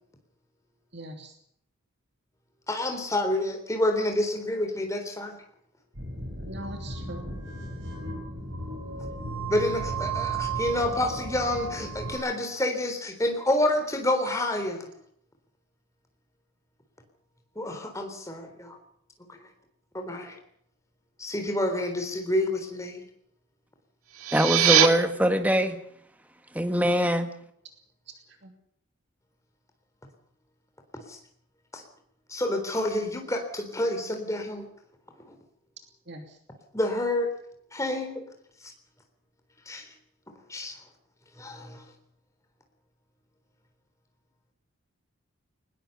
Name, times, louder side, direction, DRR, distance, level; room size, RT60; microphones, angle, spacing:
voice 1, 0.9-1.4 6.5-7.3 28.4-28.5 36.1-36.4, right 1 dB, 50° right, 2.9 m, -41 dB
voice 2, 2.7-5.4 9.5-14.9 17.6-18.8 19.9-20.4 21.2-23.0 26.8-26.9 30.9-31.2 31.7-31.8 32.3-34.7 36.7-37.3 37.7-38.2 39.7-39.9 40.5-40.7 41.4-41.8, left 1 dB, 15° left, 3.8 m, -28 dB
sound 1, 5.9-12.2, right 4 dB, 70° right, 7.7 m, -34 dB
sound 2, 24.0-24.9, right 9 dB, 90° right, 2.4 m, -21 dB
voice 3, 24.3-25.8 26.5-27.3, equal, 5° right, 1.5 m, -23 dB
20.0 x 20.0 x 6.9 m
head